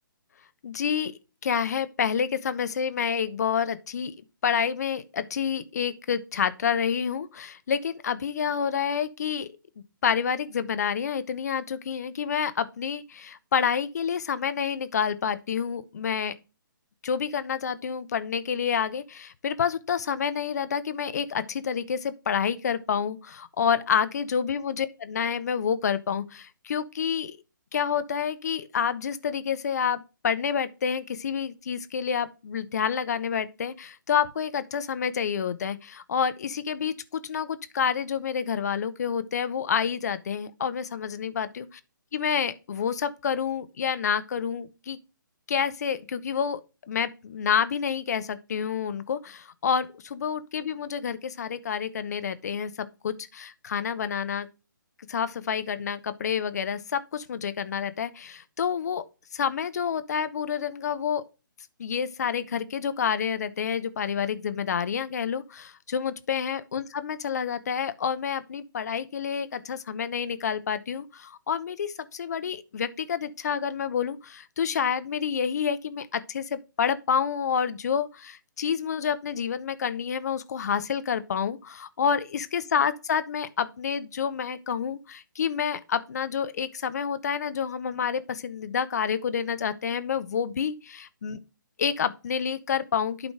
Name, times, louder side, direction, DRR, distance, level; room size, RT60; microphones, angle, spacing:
voice 1, 0.6-1.1 1.4-4.1 4.4-9.5 10.0-16.3 17.0-27.4 27.7-41.7 42.1-45.0 45.5-46.6 46.9-54.5 55.1-59.0 59.3-61.2 61.8-91.4 91.8-93.3, left 7 dB, 50° left, 0.8 m, -28 dB
11.5 x 4.1 x 3.4 m
figure-of-eight pair, 135°, 11 cm